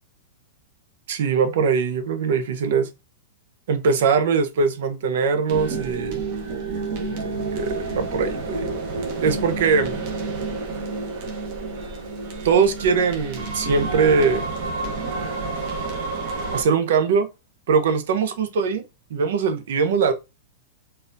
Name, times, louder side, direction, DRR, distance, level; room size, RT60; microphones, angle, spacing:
voice 1, 1.1-2.9 3.7-6.2 7.1-8.8 9.2-10.0 12.4-14.5 16.5-17.3 17.7-18.8 19.1-20.1, right 5 dB, 70° right, 0.6 m, -21 dB
sound 1, 5.5-16.6, right 3 dB, 50° right, 1.0 m, -29 dB
3.9 x 2.7 x 2.6 m
supercardioid pair, 155°, 0 cm